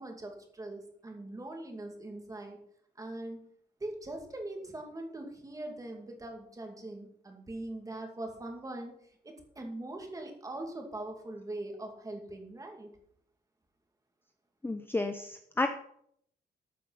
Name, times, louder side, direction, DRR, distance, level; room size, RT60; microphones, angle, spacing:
voice 1, 0.0-2.6 3.0-3.4 3.8-8.9 9.2-12.9, right 1 dB, 20° right, 3 dB, 2.5 m, -41 dB
voice 2, 14.6-15.7, left 2 dB, 10° left, 7 dB, 0.7 m, -31 dB
13.5 x 8.3 x 5.8 m, 0.68 s
wide cardioid pair, 165°, 18 cm